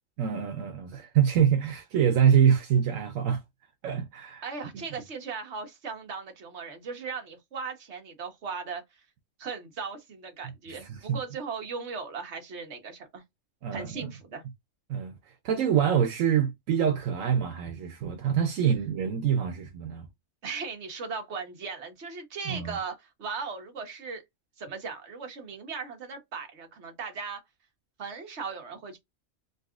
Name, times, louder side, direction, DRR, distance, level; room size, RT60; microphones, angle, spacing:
voice 1, 0.2-3.4 3.8-4.4 10.7-11.2 13.6-14.1 14.9-15.2 15.4-20.1 22.5-22.8, right 8 dB, 80° right, 1.1 m, -25 dB
voice 2, 4.4-8.8 9.4-13.2 13.7-14.4 20.4-24.2 24.6-27.4 28.0-29.0, right 5 dB, 60° right, 1.4 m, -37 dB
3.9 x 2.3 x 2.4 m
omnidirectional pair, 1.3 m